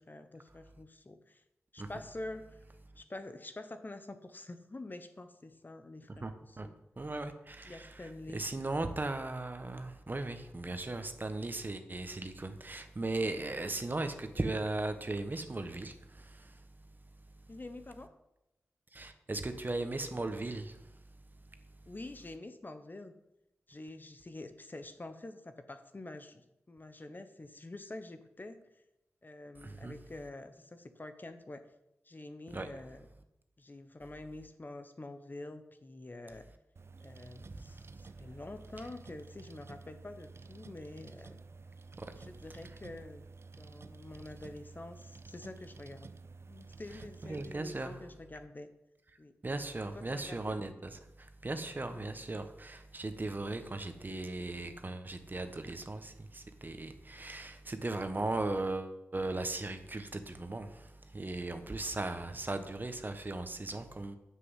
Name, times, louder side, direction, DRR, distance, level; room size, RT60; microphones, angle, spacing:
voice 1, 0.0-1.4 1.7-2.6 3.0-6.7 7.7-8.4 17.5-18.2 21.9-23.1 23.7-28.6 29.2-31.6 32.0-33.0 33.6-36.4 37.0-41.4 42.2-43.3 43.6-46.1 46.5-48.7 49.2-49.3 49.9-50.6 51.9-52.1 53.5-53.8 61.5-61.8, left 2 dB, 40° left, 9 dB, 1.0 m, -47 dB
voice 2, 6.1-6.7 7.0-16.6 18.9-20.9 29.6-29.9 32.5-32.7 37.5-37.8 42.0-42.1 47.2-48.0 49.4-64.2, right 2 dB, 40° right, 8 dB, 1.2 m, -38 dB
sound 1, 36.8-47.6, right 4 dB, 55° right, 0.5 m, -51 dB
7.7 x 6.7 x 7.5 m, 0.88 s
cardioid pair, 45°, 5 cm